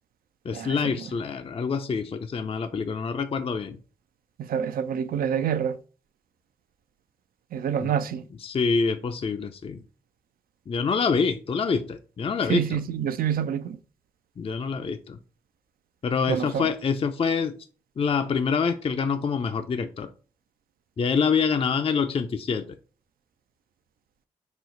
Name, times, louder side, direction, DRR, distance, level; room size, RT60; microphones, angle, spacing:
voice 1, 0.5-3.8 7.8-8.0 8.4-9.8 10.7-12.8 14.4-15.2 16.0-17.6 18.0-20.1 21.0-22.8, left 5 dB, 40° left, 0.4 m, -26 dB
voice 2, 4.5-5.7 7.5-8.2 12.5-13.8 16.3-16.7, right 8 dB, 70° right, 0.4 m, -27 dB
4.2 x 2.0 x 3.8 m
supercardioid pair, 40°, 16 cm